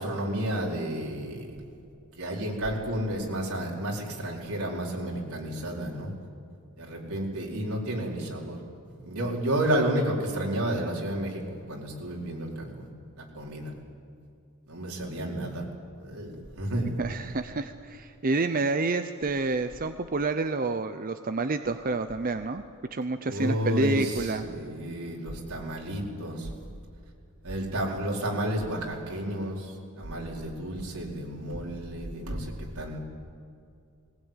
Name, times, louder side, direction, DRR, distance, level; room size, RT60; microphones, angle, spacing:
voice 1, 0.0-1.5 2.2-6.1 6.8-8.6 8.9-11.4 11.7-12.9 13.2-13.7 14.7-15.7 16.0-16.9 23.3-26.5 27.4-33.0, right 1 dB, 80° right, -1 dB, 4.7 m, -31 dB
voice 2, 17.0-22.6 22.9-24.5, right 3 dB, 40° right, 9 dB, 0.7 m, -28 dB
20.5 x 19.5 x 9.0 m, 2.5 s
head